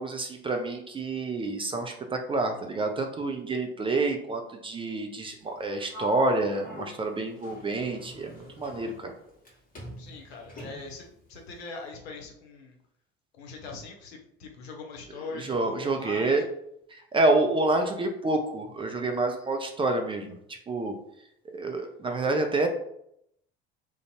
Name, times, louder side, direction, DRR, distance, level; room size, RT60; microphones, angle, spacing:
voice 1, 0.0-9.1 15.3-16.4 16.9-20.4 20.7-21.0 21.5-22.7, right 2 dB, 15° right, 4 dB, 0.3 m, -28 dB
Sliding door, 5.9-9.5 9.7-11.1, equal, 25° left, 1.0 m, -40 dB
voice 2, 10.0-12.7 13.3-16.5, left 3 dB, 75° left, 2 dB, 0.7 m, -42 dB
2.5 x 2.2 x 2.8 m, 0.74 s
hypercardioid pair, 65°, 32 cm